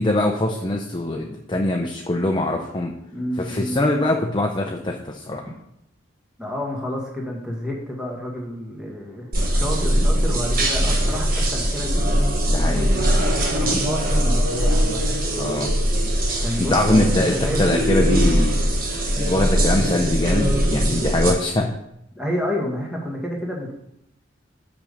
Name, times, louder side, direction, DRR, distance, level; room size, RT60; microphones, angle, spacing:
voice 1, 0.0-2.9 3.4-5.4 12.5-12.9 13.7-13.8 15.4-15.7 16.6-18.6 19.1-21.7, left 1 dB, 25° left, 2 dB, 0.6 m, -22 dB
voice 2, 3.1-3.9 6.4-12.0 12.6-15.2 16.4-18.1 22.1-23.7, equal, 5° right, -2 dB, 1.6 m, -30 dB
sound 1, 9.3-21.3, equal, 50° right, 1.4 m, -21 dB
5.9 x 5.2 x 6.6 m, 0.80 s
head